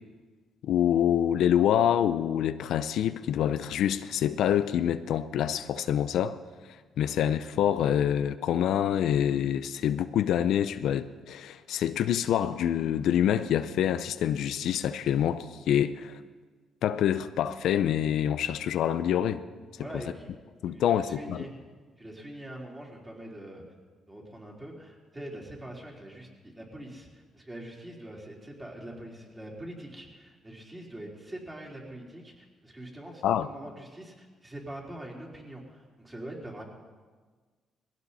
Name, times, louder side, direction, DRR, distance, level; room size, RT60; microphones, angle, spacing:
voice 1, 0.6-6.4 7.0-16.2 16.8-19.4 20.6-21.4 33.2-33.5, left 10 dB, 80° left, 11 dB, 0.6 m, -26 dB
voice 2, 19.8-20.3 20.7-21.6 22.0-23.6 24.1-36.6, right 1 dB, 20° right, -2 dB, 3.9 m, -43 dB
19.0 x 16.0 x 4.2 m, 1.5 s
cardioid pair, 90°, 0 cm